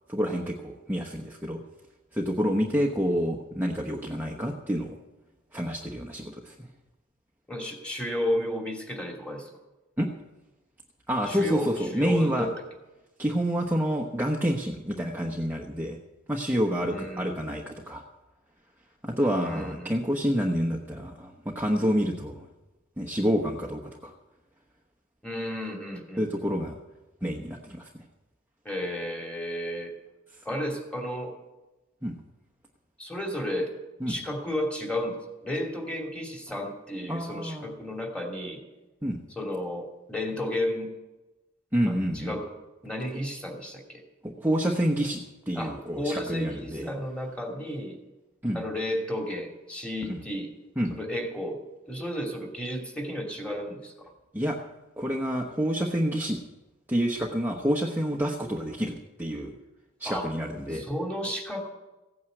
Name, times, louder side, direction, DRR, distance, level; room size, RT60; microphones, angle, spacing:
voice 1, 0.1-1.6 2.1-5.0 5.5-6.7 10.0-10.1 11.1-12.5 13.2-16.0 16.3-18.0 19.0-22.5 23.0-24.1 26.2-26.8 27.2-27.9 32.0-32.1 34.0-34.1 37.1-37.7 39.0-39.2 41.7-42.3 44.2-46.9 48.4-48.6 50.1-50.2 50.8-50.9 54.3-54.6 55.0-56.4 56.9-59.5 60.0-60.9, equal, 10° right, -1 dB, 1.1 m, -28 dB
voice 2, 7.5-9.5 11.3-12.5 16.8-17.3 19.4-19.9 25.2-26.5 28.6-29.9 30.4-31.3 33.0-33.7 34.1-35.2 35.4-38.6 39.4-40.9 41.9-42.5 42.8-44.0 45.5-48.0 48.5-50.5 50.9-51.6 51.9-53.9 60.0-60.3 60.7-61.7, left 1 dB, 5° left, 1 dB, 2.6 m, -32 dB
16.0 x 9.4 x 7.9 m, 1.1 s
head